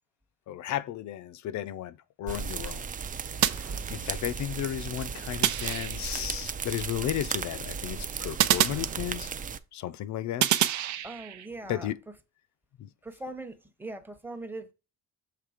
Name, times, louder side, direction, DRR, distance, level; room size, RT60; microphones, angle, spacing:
voice 1, 0.5-2.8 3.6-9.3 9.7-10.5 11.6-12.0 12.8-12.9, left 11 dB, 65° left, 0.6 m, -34 dB
sound 1, 2.3-9.6, right 6 dB, 25° right, 0.4 m, -35 dB
sound 2, 3.4-4.3 5.4-6.3 8.4-9.5 10.4-11.5, right 12 dB, 65° right, 0.7 m, -28 dB
voice 2, 11.0-11.9 13.0-14.7, right 2 dB, 5° right, 0.9 m, -40 dB
6.7 x 3.3 x 4.9 m
cardioid pair, 125°, 31 cm